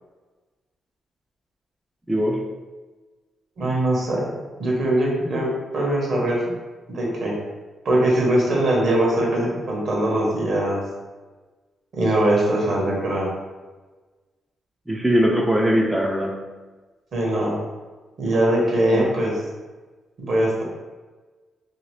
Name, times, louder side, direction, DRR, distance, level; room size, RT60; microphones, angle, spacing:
voice 1, 2.1-2.5 14.9-16.4 18.9-19.1, equal, 5° right, 0 dB, 0.3 m, -21 dB
voice 2, 3.6-4.3 4.6-6.5 6.9-7.4 7.8-10.8 11.9-13.3 17.1-17.6 18.2-19.4 20.2-20.6, right 1 dB, 55° right, -3 dB, 1.0 m, -21 dB
2.9 x 2.7 x 3.2 m, 1.3 s
cardioid pair, 130°, 0 cm